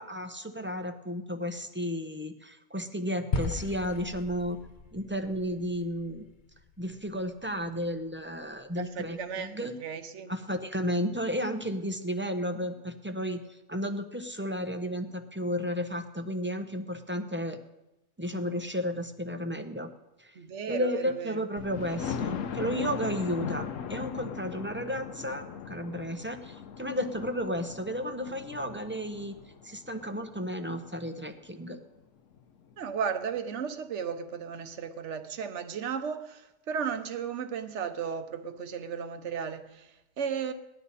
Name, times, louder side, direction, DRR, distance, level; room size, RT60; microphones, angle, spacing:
voice 1, 0.0-4.6 4.9-6.3 6.8-9.7 10.3-17.6 18.2-19.9 20.2-20.3 20.7-29.4 29.6-31.8, equal, 10° right, 0.7 m, -33 dB
sound 1, 3.3-7.7, left 4 dB, 40° left, 0.9 m, -37 dB
voice 2, 8.8-10.3 20.3-21.4 32.8-40.5, right 7 dB, 60° right, 1.2 m, -35 dB
Thunder, 21.6-31.3 31.9-32.0 32.4-32.5 32.7-32.8, left 7 dB, 75° left, 1.1 m, -39 dB
19.0 x 11.5 x 4.1 m
omnidirectional pair, 1.4 m